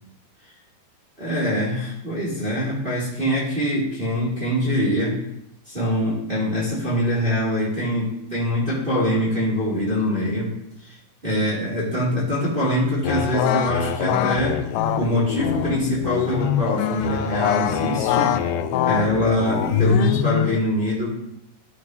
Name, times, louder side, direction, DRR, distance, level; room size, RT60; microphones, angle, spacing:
voice 1, 1.2-5.2 5.6-10.5 10.8-10.9 11.2-14.6 14.9-18.4 18.8-21.2, equal, 15° right, -6 dB, 3.1 m, -24 dB
sound 1, 13.0-20.6, left 9 dB, 85° left, 2.8 m, -23 dB
15.5 x 9.6 x 3.2 m, 0.78 s
omnidirectional pair, 5.0 m